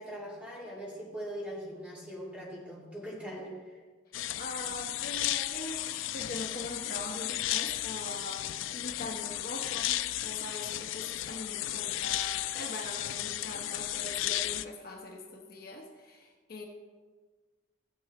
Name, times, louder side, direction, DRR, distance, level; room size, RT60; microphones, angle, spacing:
voice 1, 0.0-3.8, equal, 5° right, -6 dB, 2.6 m, -41 dB
sound 1, 4.1-14.6, left 14 dB, 80° left, 0.3 m, -34 dB
voice 2, 4.4-16.6, left 2 dB, 50° left, 1 dB, 1.1 m, -42 dB
15.5 x 7.9 x 3.1 m, 1.4 s
head